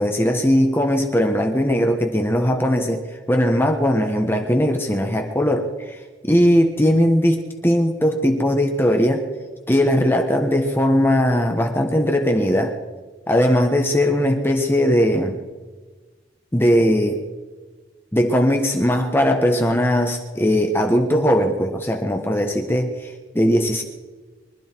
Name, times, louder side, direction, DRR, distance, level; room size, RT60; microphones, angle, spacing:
voice 1, 0.0-9.2 9.7-12.7 13.3-15.4 16.5-17.2 18.1-23.8, equal, 10° left, 3 dB, 1.2 m, -19 dB
24.0 x 12.5 x 4.6 m, 1.3 s
head